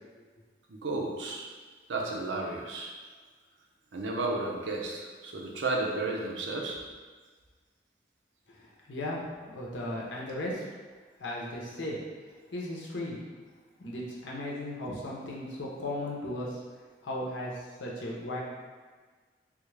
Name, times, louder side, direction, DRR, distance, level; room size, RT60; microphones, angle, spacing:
voice 1, 0.7-1.5 1.9-2.9 3.9-6.8, right 2 dB, 90° right, -1 dB, 0.6 m, -33 dB
voice 2, 8.9-9.2 9.5-10.6 11.2-12.0 12.5-13.2 13.8-16.5 17.0-18.4, left 1 dB, 90° left, -4 dB, 0.8 m, -36 dB
3.5 x 2.4 x 3.2 m, 1.4 s
head